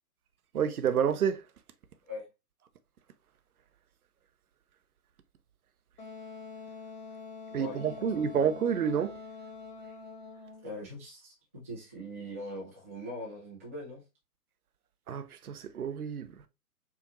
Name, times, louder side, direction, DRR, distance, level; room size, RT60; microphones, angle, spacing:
voice 1, 0.5-1.4 7.5-9.1 15.1-16.3, right 7 dB, 65° right, 0.7 m, -29 dB
Wind instrument woodwind instrument, 6.0-10.7, left 5 dB, 80° left, 1.5 m, -45 dB
voice 2, 7.5-8.3 10.6-14.0, left 1 dB, 10° right, 0.4 m, -42 dB
4.6 x 2.5 x 3.0 m
figure-of-eight pair, 125°, 47 cm